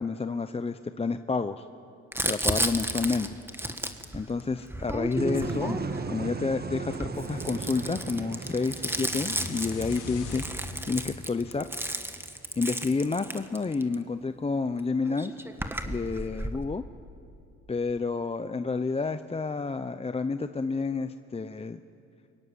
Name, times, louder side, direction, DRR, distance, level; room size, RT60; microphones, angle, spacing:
voice 1, 0.0-1.7 2.3-3.3 4.1-5.8 6.1-11.7 12.6-15.3 15.9-16.8 17.7-21.8, left 4 dB, 20° left, 10 dB, 0.7 m, -30 dB
Crumpling crinkling, 2.1-6.2 6.8-13.9 14.8-14.9 15.1-16.6, right 1 dB, 10° right, 1.7 m, -33 dB
sound 1, 5.2-11.0, right 4 dB, 30° right, 1.4 m, -37 dB
sound 2, 8.6-12.7, left 3 dB, 85° left, 4.1 m, -41 dB
23.5 x 22.5 x 9.6 m, 2.5 s
cardioid pair, 90°, 30 cm